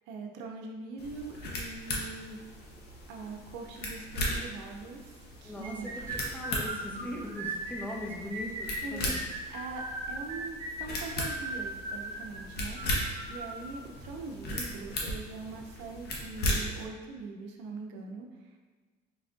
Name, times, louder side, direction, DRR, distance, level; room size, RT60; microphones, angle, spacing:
voice 1, 0.1-2.4 3.1-5.9 8.8-9.2 9.5-18.6, right 3 dB, 85° right, 2 dB, 0.6 m, -42 dB
sound 1, 1.0-16.8, left 1 dB, 60° left, 1.0 m, -37 dB
voice 2, 5.4-9.1, left 1 dB, 10° left, -1 dB, 0.7 m, -40 dB
sound 2, 5.6-13.7, right 2 dB, 30° right, 1.1 m, -38 dB
4.6 x 3.4 x 2.5 m, 1.3 s
supercardioid pair, 95°, 18 cm